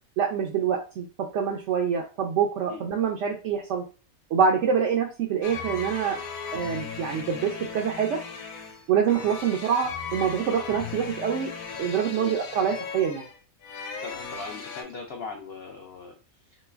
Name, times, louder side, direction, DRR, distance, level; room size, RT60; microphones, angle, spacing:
voice 1, 0.2-3.8 4.3-6.2 6.5-8.2 8.9-11.5 11.8-13.2, right 7 dB, 65° right, 0 dB, 0.8 m, -25 dB
sound 1, 5.4-14.8, left 6 dB, 75° left, 1.1 m, -37 dB
voice 2, 14.0-16.1, left 4 dB, 60° left, 1 dB, 0.7 m, -39 dB
3.1 x 3.1 x 2.3 m, 0.34 s
omnidirectional pair, 1.5 m